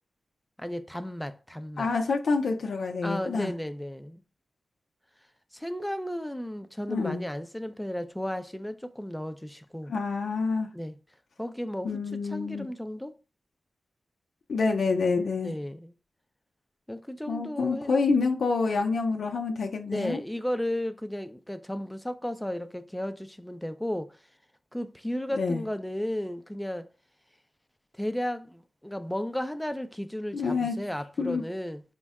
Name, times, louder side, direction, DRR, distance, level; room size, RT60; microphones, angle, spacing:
voice 1, 0.6-1.9 3.0-4.2 5.5-9.9 10.7-11.0 11.4-13.1 15.4-15.9 16.9-17.9 19.9-24.2 24.7-26.9 27.9-31.8, equal, 5° left, 0.4 m, -34 dB
voice 2, 1.8-3.5 6.9-7.2 9.9-10.7 11.8-12.7 14.5-15.5 17.3-20.2 25.3-25.6 30.3-30.8 31.2-31.4, left 4 dB, 75° left, 0.4 m, -27 dB
4.4 x 2.1 x 3.5 m
cardioid pair, 50°, 0 cm